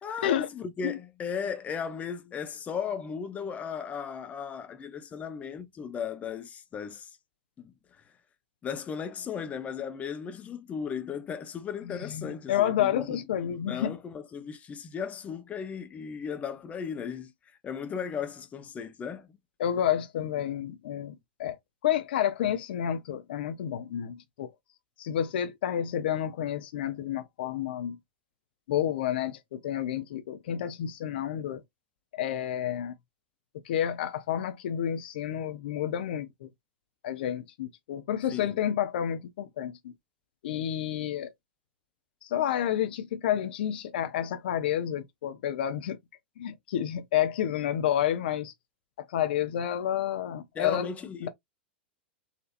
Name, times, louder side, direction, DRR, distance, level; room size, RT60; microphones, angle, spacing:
voice 1, 0.0-7.2 7.6-7.7 8.6-13.2 13.4-17.3 17.6-19.4 38.3-38.5 50.5-51.3, left 6 dB, 25° left, 0.8 m, -36 dB
voice 2, 11.9-13.9 19.6-21.6 21.8-24.5 25.0-28.0 28.7-31.6 32.1-32.9 33.6-36.5 37.0-39.8 40.4-41.3 42.2-46.0 46.4-48.5 49.0-50.9 51.2-51.3, left 10 dB, 65° left, 0.6 m, -30 dB
4.2 x 2.7 x 2.5 m
hypercardioid pair, 100°, 6 cm